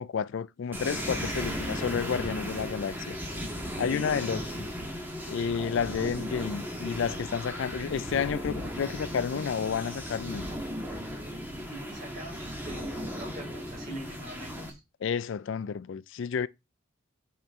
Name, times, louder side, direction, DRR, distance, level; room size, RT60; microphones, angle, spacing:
voice 1, 0.0-3.2 3.8-4.7 5.3-10.5 15.0-16.5, left 6 dB, 60° left, 0.3 m, -31 dB
sound 1, 0.7-14.7, equal, 10° right, 1.5 m, -36 dB
voice 2, 1.0-1.5 4.3-4.6 11.7-14.8, right 1 dB, 40° right, 3.6 m, -44 dB
8.9 x 4.4 x 3.5 m
head